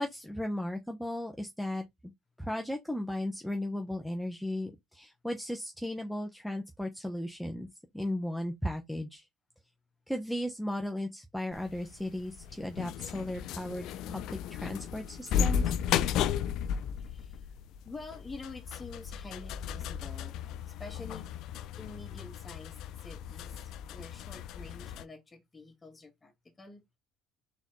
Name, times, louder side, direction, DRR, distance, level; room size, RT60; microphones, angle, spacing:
voice 1, 0.0-1.8 2.4-7.7 7.9-9.3 10.1-15.7, left 1 dB, ahead, 0.9 m, -36 dB
sound 1, 11.5-25.0, left 8 dB, 65° left, 0.4 m, -35 dB
voice 2, 17.0-17.6 17.8-20.4 20.7-26.8, left 3 dB, 25° left, 1.7 m, -48 dB
4.0 x 3.8 x 3.1 m
hypercardioid pair, 75°, 0 cm